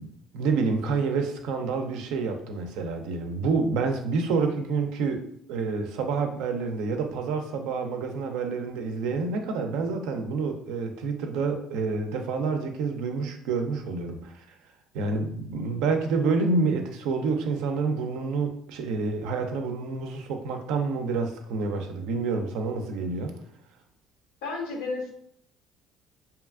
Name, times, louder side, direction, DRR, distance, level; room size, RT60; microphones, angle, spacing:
voice 1, 0.0-5.2 5.5-14.3 14.9-23.3, right 4 dB, 75° right, 5 dB, 0.4 m, -28 dB
voice 2, 24.4-25.1, left 3 dB, 80° left, 1 dB, 0.6 m, -32 dB
2.7 x 2.3 x 2.3 m, 0.69 s
hypercardioid pair, 65°, 0 cm